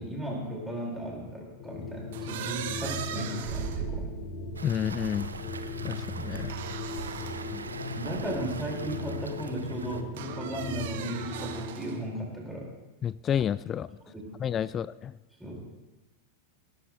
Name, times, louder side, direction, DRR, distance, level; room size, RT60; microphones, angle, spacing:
voice 1, 0.0-4.0 7.9-12.7 14.7-14.8 15.4-15.6, right 1 dB, 5° right, -3 dB, 5.1 m, -35 dB
sound 1, 1.5-11.8, left 3 dB, 40° left, 1.5 m, -38 dB
sound 2, 2.1-5.0 6.5-7.4 8.1-8.2 10.2-12.0, right 9 dB, 55° right, 1.2 m, -38 dB
voice 2, 4.6-5.3 5.8-6.5 7.5-7.6 13.0-13.9 14.4-15.1, left 9 dB, 25° left, 18 dB, 0.3 m, -30 dB
Waves surf, 4.6-10.0, right 5 dB, 75° right, 0.8 m, -42 dB
17.5 x 14.5 x 3.3 m, 1.1 s
figure-of-eight pair, 90°, 0 cm